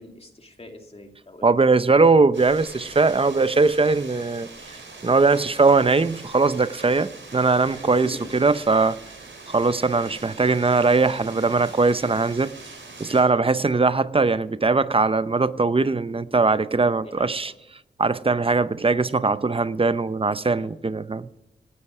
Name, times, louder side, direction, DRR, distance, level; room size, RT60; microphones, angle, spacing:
voice 1, 0.0-1.5 7.6-8.4 13.3-13.5 14.3-14.4 17.0-17.5 20.6-20.7, left 1 dB, 30° left, 2.4 m, -43 dB
voice 2, 1.4-4.5 5.0-9.0 9.5-12.5 13.0-17.5 18.0-21.3, right 3 dB, 30° right, 0.7 m, -20 dB
sound 1, 2.3-13.2, right 3 dB, 90° right, 4.9 m, -43 dB
17.5 x 12.5 x 6.0 m
wide cardioid pair, 105°, 19 cm